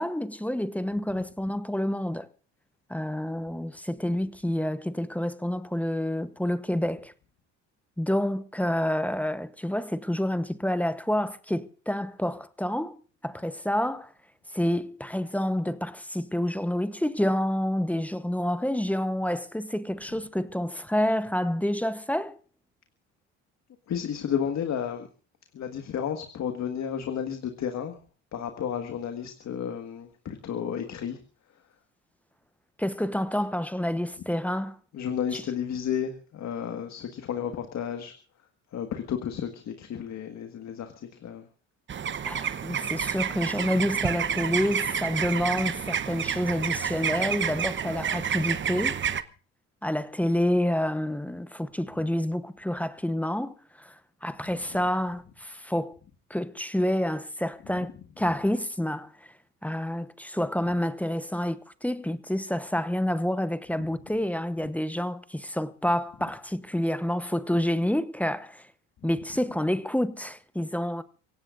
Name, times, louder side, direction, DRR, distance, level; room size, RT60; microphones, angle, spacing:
voice 1, 0.0-2.3 2.9-7.1 8.0-14.1 14.5-22.4 32.8-34.8 35.3-35.4 42.2-49.0 49.8-54.0 54.2-56.0 56.3-59.1 59.6-68.6 69.0-71.0, left 1 dB, 5° left, 0.9 m, -28 dB
voice 2, 23.9-25.1 25.5-28.0 28.3-31.2 34.9-38.1 38.7-41.4 54.5-54.8 57.6-57.8 58.2-58.3 64.6-64.7 69.0-69.4, left 8 dB, 50° left, 1.7 m, -32 dB
sound 1, 41.9-49.2, right 8 dB, 35° right, 0.9 m, -29 dB
25.5 x 17.0 x 2.6 m
supercardioid pair, 85°, 34 cm